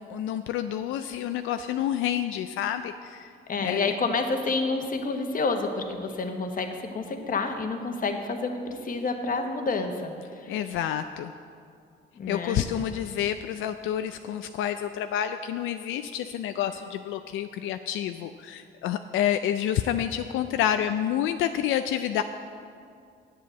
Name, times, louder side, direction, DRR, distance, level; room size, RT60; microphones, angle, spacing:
voice 1, 0.0-3.3 3.6-3.9 10.5-11.3 12.3-22.2, left 10 dB, 85° left, 8 dB, 0.4 m, -29 dB
voice 2, 3.5-10.1 12.2-12.6, left 3 dB, 45° left, 5 dB, 1.2 m, -29 dB
8.6 x 7.6 x 8.0 m, 2.3 s
cardioid pair, 90°, 20 cm